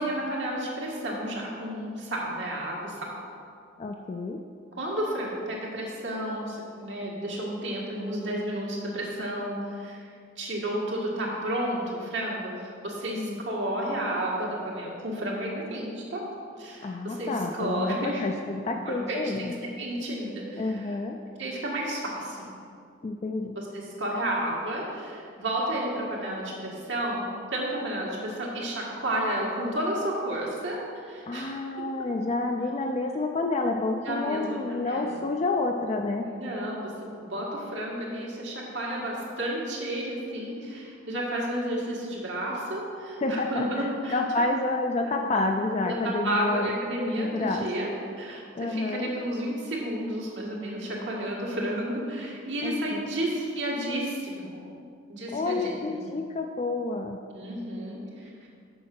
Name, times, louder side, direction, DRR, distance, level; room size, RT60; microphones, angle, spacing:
voice 1, 0.0-3.1 4.7-10.0 10.4-16.2 16.6-18.2 18.7-20.9 21.4-22.4 23.5-30.8 31.0-31.6 34.0-34.6 34.8-35.1 36.2-44.1 45.0-45.1 45.8-47.9 48.2-54.6 55.1-56.0 57.3-58.5, right 1 dB, 75° right, -3 dB, 1.7 m, -32 dB
voice 2, 3.8-4.4 13.2-13.4 16.8-19.5 20.6-21.2 23.0-23.5 31.3-36.3 43.2-46.7 47.2-47.7 48.5-49.1 52.6-53.1 55.3-57.2, left 2 dB, 35° left, 3 dB, 0.3 m, -29 dB
6.3 x 5.0 x 5.9 m, 2.3 s
head